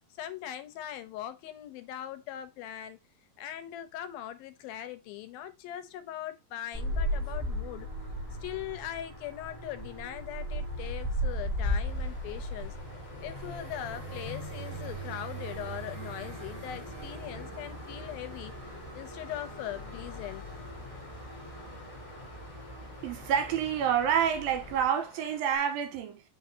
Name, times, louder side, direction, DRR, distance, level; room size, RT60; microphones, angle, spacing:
voice 1, 0.1-3.0 3.4-7.9 8.4-12.8 13.2-18.5 18.9-20.5, left 12 dB, 80° left, 2.6 m, -40 dB
sound 1, 6.7-24.9, equal, 10° right, 3.7 m, -37 dB
Water, 11.8-25.6, left 4 dB, 40° left, 1.7 m, -54 dB
voice 2, 23.0-26.2, right 8 dB, 80° right, 2.8 m, -28 dB
7.9 x 4.7 x 2.8 m
omnidirectional pair, 4.2 m